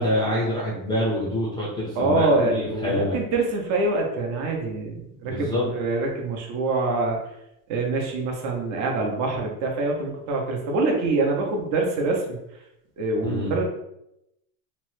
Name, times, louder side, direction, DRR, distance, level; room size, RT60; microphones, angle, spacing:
voice 1, 0.0-3.1 5.2-5.7 13.2-13.5, left 1 dB, 10° left, -6 dB, 0.4 m, -26 dB
voice 2, 2.0-7.2 7.7-12.4 13.0-13.6, right 3 dB, 40° right, 1 dB, 0.6 m, -25 dB
2.9 x 2.1 x 3.0 m, 0.84 s
supercardioid pair, 145°, 43 cm